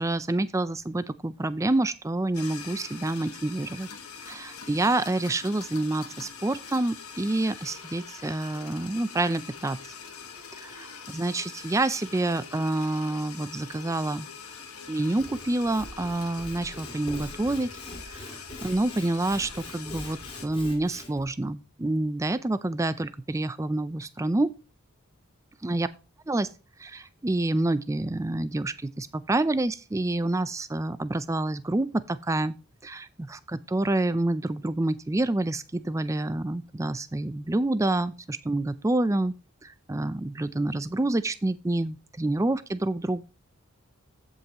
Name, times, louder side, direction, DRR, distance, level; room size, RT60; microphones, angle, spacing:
voice 1, 0.0-3.9 4.3-9.8 10.6-14.3 14.9-17.7 18.1-18.2 18.6-24.5 25.6-25.9 26.3-26.5 26.8-32.5 32.8-39.3 39.6-43.2, right 2 dB, 15° right, 0.4 m, -28 dB
sound 1, 2.3-20.5, left 6 dB, 75° left, 1.6 m, -43 dB
Sawing / Wood, 15.0-21.3, left 1 dB, 25° left, 1.9 m, -43 dB
15.5 x 5.4 x 2.9 m
head